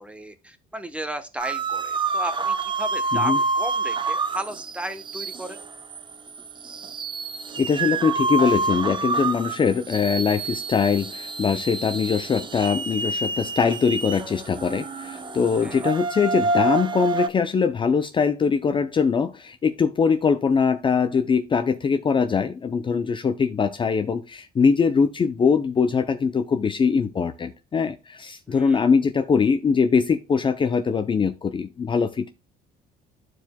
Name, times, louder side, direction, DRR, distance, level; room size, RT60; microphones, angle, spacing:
voice 1, 0.0-5.6 15.6-15.9 28.5-28.8, right 1 dB, 5° right, 1.1 m, -35 dB
sound 1, 1.4-17.3, right 3 dB, 30° right, 0.7 m, -28 dB
voice 2, 7.6-32.3, left 5 dB, 30° left, 0.5 m, -22 dB
11.5 x 4.7 x 2.2 m
cardioid pair, 110°, 17 cm